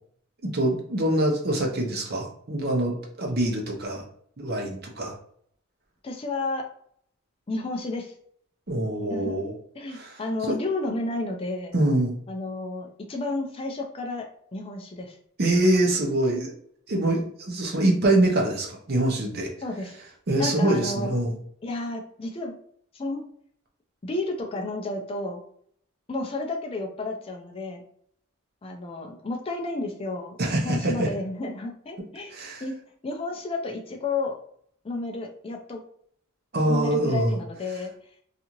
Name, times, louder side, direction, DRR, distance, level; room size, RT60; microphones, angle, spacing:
voice 1, 0.4-4.1 4.4-5.2 8.7-9.5 9.9-10.6 11.7-12.1 15.4-16.5 16.9-19.5 20.3-21.4 30.4-31.1 32.3-32.6 36.5-37.4, right 1 dB, 45° right, 1 dB, 0.6 m, -24 dB
voice 2, 6.0-6.7 7.5-8.1 9.1-9.5 9.8-11.8 12.3-15.2 19.6-20.0 20.4-21.1 21.6-22.6 22.9-23.2 24.0-25.4 26.1-27.8 28.6-32.8 33.0-34.3 34.8-35.8 36.7-37.9, left 2 dB, 25° left, 2 dB, 0.3 m, -32 dB
2.7 x 2.4 x 2.9 m, 0.64 s
head